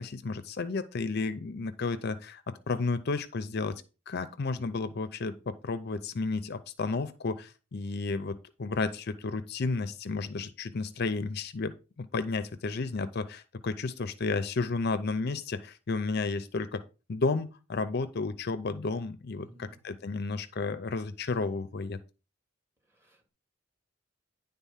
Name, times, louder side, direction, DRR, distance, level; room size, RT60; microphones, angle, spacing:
voice 1, 0.0-16.8 17.1-22.0, left 3 dB, 55° left, 12 dB, 0.6 m, -32 dB
voice 2, 19.4-19.8 22.9-23.3, right 1 dB, 15° right, 0 dB, 2.5 m, -55 dB
10.0 x 3.9 x 5.6 m, 0.32 s
head